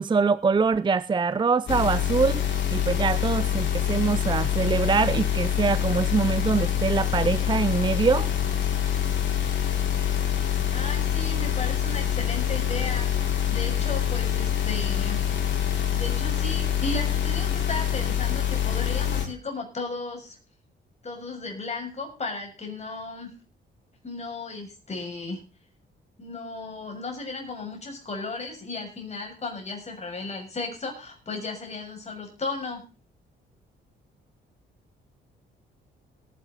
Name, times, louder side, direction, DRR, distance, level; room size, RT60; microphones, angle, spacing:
voice 1, 0.0-2.4 2.7-8.3, right 5 dB, 25° right, 0.6 m, -24 dB
sound 1, 1.7-19.2, left 9 dB, 70° left, 4.9 m, -25 dB
voice 2, 10.7-15.6 15.9-20.4 21.0-23.3 24.0-25.4 26.2-32.9, left 3 dB, 35° left, 6.9 m, -35 dB
18.0 x 10.5 x 4.1 m
cardioid pair, 90°, 20 cm